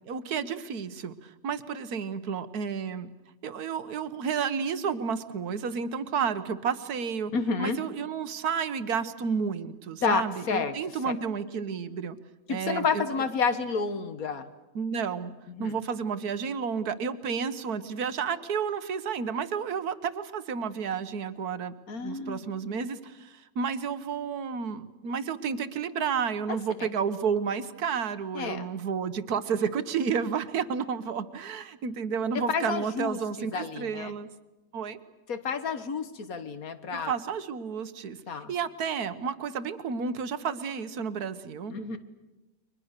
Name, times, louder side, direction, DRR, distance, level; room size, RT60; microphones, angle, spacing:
voice 1, 0.1-3.1 3.4-7.3 7.6-12.2 12.5-13.1 14.7-15.3 15.6-34.3 34.7-35.0 36.9-41.7, right 6 dB, 65° right, 13 dB, 1.5 m, -31 dB
voice 2, 7.3-7.8 10.0-10.8 11.1-11.2 12.5-14.5 15.5-15.7 21.9-22.4 26.5-26.9 28.3-28.7 32.5-34.2 35.3-37.1 38.3-38.5 41.7-42.0, left 5 dB, 60° left, 11 dB, 1.9 m, -30 dB
30.0 x 23.5 x 6.6 m, 1.0 s
omnidirectional pair, 1.8 m